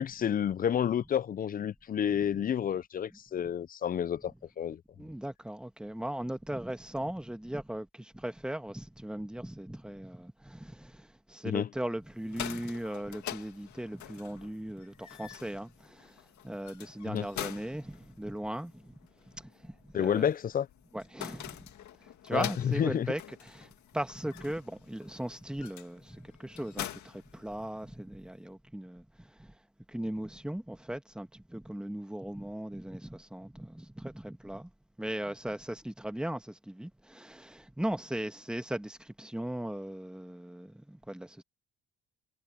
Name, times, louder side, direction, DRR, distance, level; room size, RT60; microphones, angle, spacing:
voice 1, 0.0-4.8 11.4-11.7 17.1-17.3 19.9-20.7 22.3-23.1, left 9 dB, 30° left, 0.4 m, -30 dB
voice 2, 5.0-19.0 19.3-20.3 20.9-21.7 22.0-29.6 29.9-34.7 35.0-41.4, right 1 dB, 5° right, 1.5 m, -38 dB
sound 1, 12.1-28.0, left 12 dB, 60° left, 2.2 m, -45 dB
cardioid pair, 120°, 32 cm